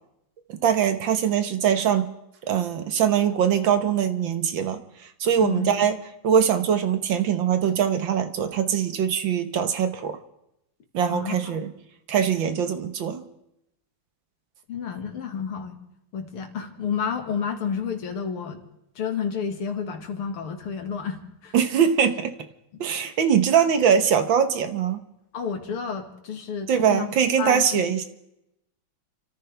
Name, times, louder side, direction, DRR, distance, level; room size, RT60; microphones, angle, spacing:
voice 1, 0.6-2.1 2.5-4.8 5.2-6.0 6.2-10.2 10.9-11.7 12.1-13.2 21.5-22.3 22.8-25.0 26.7-28.0, right 8 dB, 65° right, 9 dB, 1.8 m, -22 dB
voice 2, 5.4-5.8 11.1-11.5 14.7-15.8 16.1-18.6 19.0-21.6 22.7-22.8 25.3-27.1 27.4-27.9, left 6 dB, 85° left, 5 dB, 2.8 m, -30 dB
30.0 x 14.0 x 3.4 m, 0.82 s
omnidirectional pair, 2.4 m